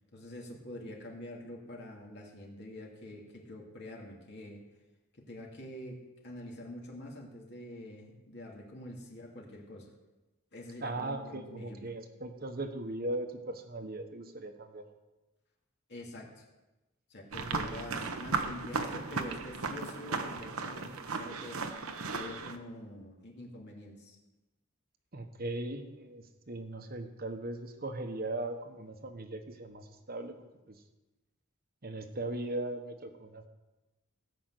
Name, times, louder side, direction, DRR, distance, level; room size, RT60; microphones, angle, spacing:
voice 1, 0.1-4.6 5.1-9.9 10.5-11.8 15.9-16.5 17.1-21.7 22.0-24.2, left 1 dB, 50° left, -1 dB, 2.6 m, -46 dB
voice 2, 10.8-14.8 25.1-30.8 31.8-33.5, right 2 dB, 45° right, 6 dB, 1.3 m, -39 dB
sound 1, 17.3-22.6, right 4 dB, 80° right, 1.1 m, -36 dB
17.5 x 6.0 x 8.0 m, 1.1 s
head